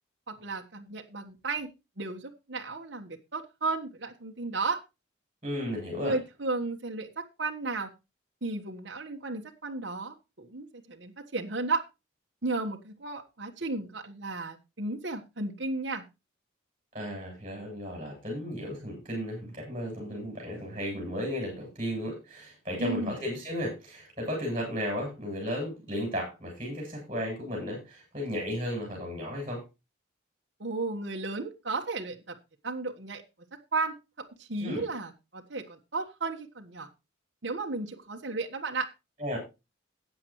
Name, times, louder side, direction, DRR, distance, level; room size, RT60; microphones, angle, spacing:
voice 1, 0.3-1.7 2.0-4.8 6.0-7.9 8.4-11.8 12.4-16.0 22.8-23.1 30.6-32.4 32.6-33.2 33.5-36.9 37.4-38.9, right 3 dB, 65° right, 2 dB, 1.4 m, -34 dB
voice 2, 5.4-6.2 16.9-29.6 34.6-34.8 39.2-39.4, equal, 30° right, -1 dB, 7.9 m, -34 dB
15.5 x 9.0 x 3.1 m, 0.26 s
head